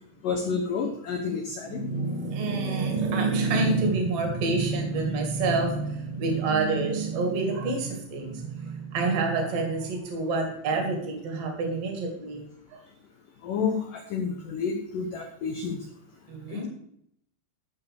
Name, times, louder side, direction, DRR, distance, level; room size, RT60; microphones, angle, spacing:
voice 1, 0.2-1.8 13.4-15.8 16.5-16.7, left 5 dB, 85° left, 3 dB, 1.9 m, -30 dB
voice 2, 1.7-12.4 12.7-12.8 16.3-16.7, right 3 dB, 40° right, 2 dB, 2.6 m, -27 dB
14.0 x 4.8 x 6.5 m, 0.72 s
omnidirectional pair, 5.5 m